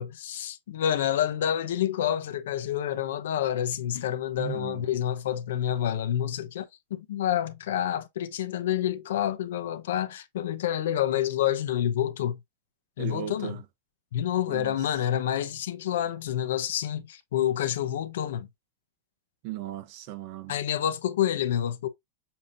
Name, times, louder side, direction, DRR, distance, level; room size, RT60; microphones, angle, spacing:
voice 1, 0.0-6.6 6.9-12.4 13.0-13.6 14.1-18.5 20.5-21.9, left 10 dB, 75° left, 0.8 m, -28 dB
voice 2, 4.4-4.9 13.0-13.6 14.5-14.8 19.4-20.6, right 13 dB, 40° right, 0.6 m, -37 dB
7.0 x 2.8 x 2.6 m
supercardioid pair, 170°, 0 cm